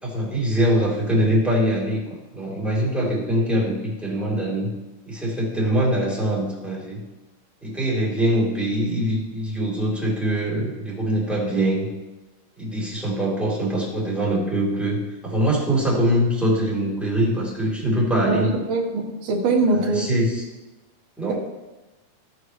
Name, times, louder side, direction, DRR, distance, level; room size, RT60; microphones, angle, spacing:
voice 1, 0.0-2.0 2.3-4.7 5.1-7.0 7.6-11.9 12.6-18.5 19.7-20.4 21.2-21.3, right 1 dB, ahead, -6 dB, 2.8 m, -23 dB
voice 2, 18.3-20.0, right 3 dB, 60° right, -1 dB, 3.1 m, -22 dB
17.0 x 6.4 x 3.3 m, 1.1 s
omnidirectional pair, 4.6 m